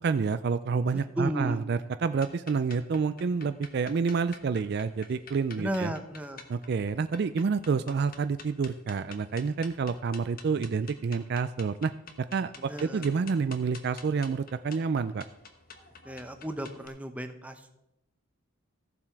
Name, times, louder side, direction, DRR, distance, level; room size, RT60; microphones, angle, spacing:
voice 1, 0.0-5.9 6.5-11.9 12.2-15.2, right 5 dB, 50° right, 12 dB, 0.3 m, -28 dB
voice 2, 0.9-1.6 5.6-6.4 12.6-13.0 16.1-17.7, right 1 dB, 5° right, 7 dB, 0.7 m, -34 dB
sound 1, 2.2-16.9, left 5 dB, 40° left, 1.1 m, -49 dB
14.5 x 7.4 x 4.6 m, 0.86 s
head